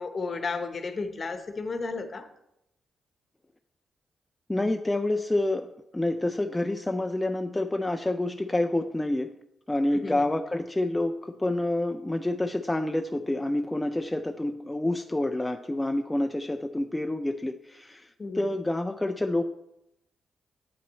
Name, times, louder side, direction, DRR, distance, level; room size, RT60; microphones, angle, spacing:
voice 1, 0.0-2.3 9.9-10.3 18.2-18.4, left 4 dB, 45° left, 8 dB, 0.9 m, -33 dB
voice 2, 4.5-9.3 9.7-18.1 18.3-19.4, left 1 dB, 15° left, 6 dB, 0.4 m, -28 dB
8.5 x 4.5 x 4.1 m, 0.83 s
cardioid pair, 70°, 0 cm